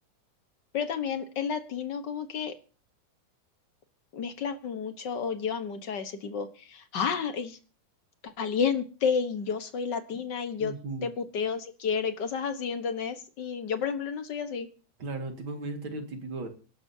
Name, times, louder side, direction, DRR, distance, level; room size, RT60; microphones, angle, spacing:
voice 1, 0.7-2.5 4.1-7.6 8.2-10.7 11.0-14.7, left 6 dB, 60° left, 9 dB, 1.1 m, -31 dB
voice 2, 10.6-11.1 15.0-16.5, right 2 dB, 45° right, 5 dB, 2.4 m, -36 dB
25.0 x 12.0 x 2.8 m, 0.35 s
omnidirectional pair, 3.6 m